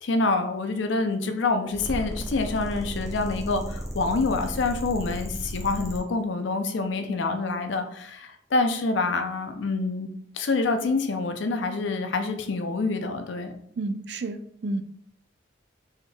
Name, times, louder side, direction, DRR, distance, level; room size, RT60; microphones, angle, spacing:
voice 1, 0.0-10.1 10.3-13.5, left 3 dB, 70° left, 6 dB, 0.5 m, -26 dB
sound 1, 1.7-6.0, equal, ahead, 0.6 m, -34 dB
voice 2, 13.8-14.8, right 2 dB, 60° right, 9 dB, 0.4 m, -30 dB
4.2 x 3.6 x 2.3 m, 0.65 s
head